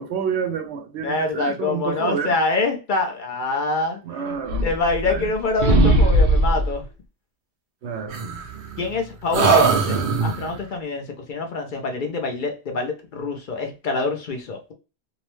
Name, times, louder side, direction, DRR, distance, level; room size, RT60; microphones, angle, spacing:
voice 1, 0.0-2.4 4.0-4.7 5.1-5.3 7.8-8.2, right 7 dB, 85° right, 0.9 m, -28 dB
voice 2, 1.0-6.8 8.8-14.7, left 3 dB, 55° left, 0.7 m, -26 dB
sound 1, 4.4-5.3 5.6-6.8 8.1-9.0 9.3-10.6, right 2 dB, 55° right, 0.7 m, -19 dB
2.7 x 2.1 x 3.0 m
omnidirectional pair, 1.1 m